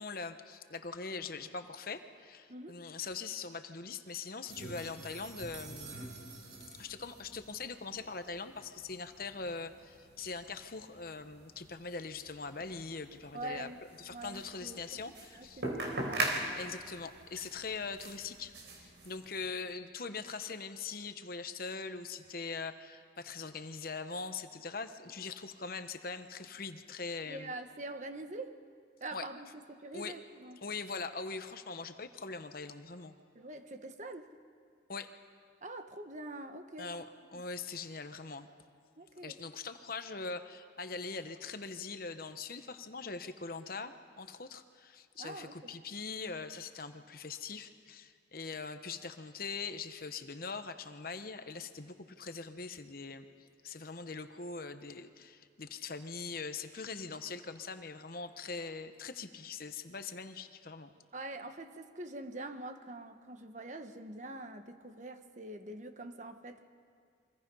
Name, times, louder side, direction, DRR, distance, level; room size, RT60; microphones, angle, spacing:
voice 1, 0.0-6.0 6.8-13.7 14.0-15.6 16.6-27.5 29.1-29.3 29.9-30.2 30.6-33.1 34.9-35.1 36.8-37.0 37.3-38.5 39.2-53.2 53.6-60.9, left 4 dB, 50° left, 9 dB, 1.0 m, -42 dB
sound 1, 4.5-19.5, right 2 dB, 75° right, 4.1 m, -43 dB
voice 2, 13.3-13.8 14.1-15.0 15.3-16.3 27.3-28.6 29.0-30.6 33.3-34.3 35.6-36.9 37.3-37.4 39.0-39.4 45.2-45.7 61.1-66.6, right 2 dB, 40° right, 7 dB, 1.3 m, -44 dB
29.5 x 24.5 x 5.5 m, 2.2 s
head